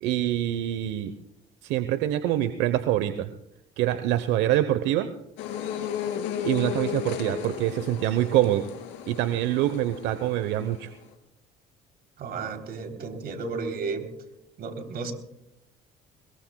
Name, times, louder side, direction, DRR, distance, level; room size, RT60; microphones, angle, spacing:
voice 1, 0.0-1.1 1.6-3.3 3.8-5.1 6.4-8.7 9.1-10.9, right 13 dB, 80° right, 11 dB, 1.0 m, -25 dB
sound 1, 5.4-11.1, left 10 dB, 80° left, 3.0 m, -35 dB
voice 2, 12.2-14.1 14.6-15.1, right 4 dB, 55° right, 5 dB, 3.4 m, -33 dB
22.5 x 21.5 x 2.3 m, 0.85 s
supercardioid pair, 80°, 19 cm